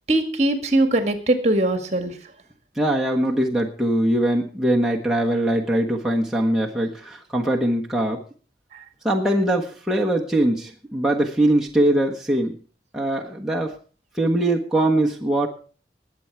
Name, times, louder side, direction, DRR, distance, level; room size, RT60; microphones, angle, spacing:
voice 1, 0.1-2.2 8.7-8.8, right 1 dB, 40° right, 7 dB, 1.9 m, -21 dB
voice 2, 2.8-8.2 9.0-12.6 12.9-13.8 14.1-15.5, right 1 dB, 5° right, -3 dB, 1.4 m, -22 dB
20.5 x 8.0 x 4.7 m, 0.39 s
head